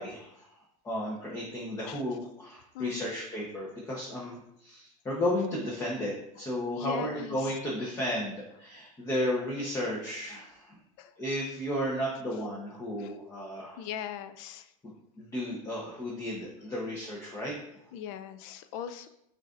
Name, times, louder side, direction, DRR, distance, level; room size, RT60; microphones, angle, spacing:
voice 1, 0.0-10.8 11.2-13.8 15.2-17.5, left 1 dB, 15° left, -4 dB, 0.9 m, -34 dB
voice 2, 2.7-3.1 6.6-7.5 11.0-11.1 13.0-13.2 13.8-14.7 17.9-19.1, left 8 dB, 60° left, 11 dB, 0.4 m, -39 dB
6.1 x 2.6 x 2.5 m, 0.78 s
supercardioid pair, 125°, 17 cm